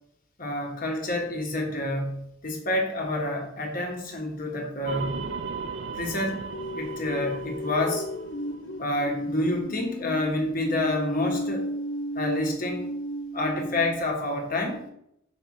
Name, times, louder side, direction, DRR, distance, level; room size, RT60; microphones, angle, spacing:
voice 1, 0.4-5.2 5.9-6.5 6.7-8.1 8.8-11.7 12.1-12.9 13.3-14.8, left 1 dB, 45° left, 1 dB, 1.4 m, -28 dB
sound 1, 4.9-9.3, right 4 dB, 60° right, 0.6 m, -37 dB
sound 2, 6.5-14.1, equal, 60° left, 0.7 m, -34 dB
6.1 x 5.0 x 4.4 m, 0.76 s
head